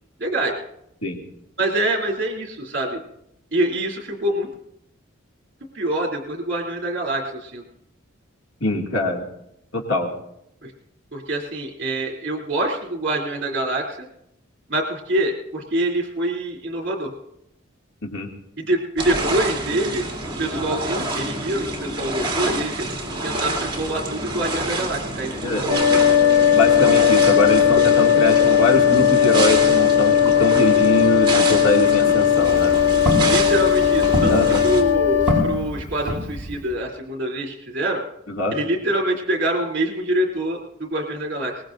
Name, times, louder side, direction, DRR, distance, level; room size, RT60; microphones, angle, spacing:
voice 1, 0.2-0.6 1.6-3.0 3.5-4.5 5.7-7.6 10.6-10.7 11.1-14.1 14.7-17.1 18.6-20.1 20.4-22.8 23.2-26.0 33.2-34.3 34.6-38.0 38.5-41.6, right 1 dB, 50° right, -1 dB, 3.0 m, -25 dB
voice 2, 8.6-9.2 9.7-10.1 18.0-18.3 25.4-25.7 26.5-30.1 30.4-32.7 34.3-34.6 38.3-38.5, left 1 dB, 80° left, 0 dB, 2.4 m, -23 dB
sound 1, 19.0-34.8, right 2 dB, 25° right, 2.8 m, -27 dB
sound 2, 25.7-35.4, left 9 dB, 60° left, 7.3 m, -17 dB
Walk footsteps, 32.2-36.8, equal, 5° right, 5.0 m, -27 dB
23.0 x 20.0 x 2.6 m, 0.77 s
head